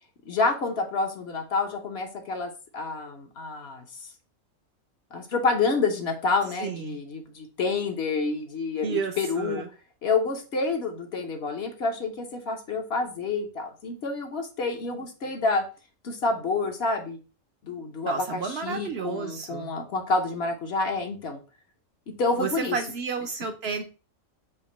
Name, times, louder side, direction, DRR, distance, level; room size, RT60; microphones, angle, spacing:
voice 1, 0.3-4.1 5.1-9.6 10.0-15.6 16.0-17.2 17.6-21.4 22.1-22.8, left 3 dB, 55° left, 4 dB, 1.0 m, -28 dB
voice 2, 6.6-7.0 8.8-9.7 18.1-19.7 22.4-23.8, right 5 dB, 65° right, 7 dB, 0.7 m, -31 dB
5.1 x 2.6 x 4.0 m, 0.33 s
omnidirectional pair, 1.4 m